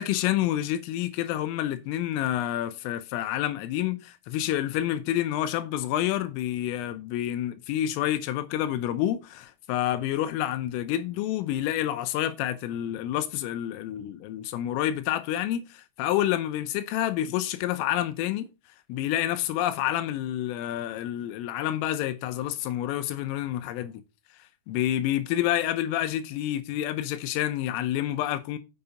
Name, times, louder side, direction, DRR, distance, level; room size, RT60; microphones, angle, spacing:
voice 1, 0.0-18.5 18.9-24.0 24.7-28.6, left 12 dB, 80° left, 3.3 m, -28 dB
7.7 x 7.1 x 5.3 m
omnidirectional pair, 6.0 m